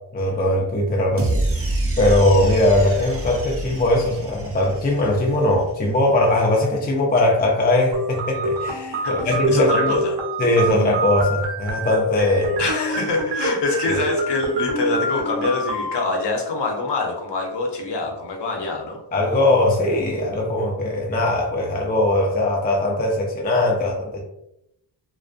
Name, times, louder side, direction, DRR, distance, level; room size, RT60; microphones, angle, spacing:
voice 1, 0.1-10.0 10.4-12.5 13.9-14.0 19.1-24.2, left 1 dB, 20° left, 0 dB, 0.4 m, -20 dB
sound 1, 1.2-5.5, right 2 dB, 30° right, 0.5 m, -27 dB
sound 2, 7.9-15.9, right 1 dB, 70° right, 0.6 m, -26 dB
voice 2, 9.0-10.2 12.6-19.0, left 3 dB, 65° left, 1 dB, 0.8 m, -25 dB
2.4 x 2.1 x 2.4 m, 0.82 s
cardioid pair, 60°, 45 cm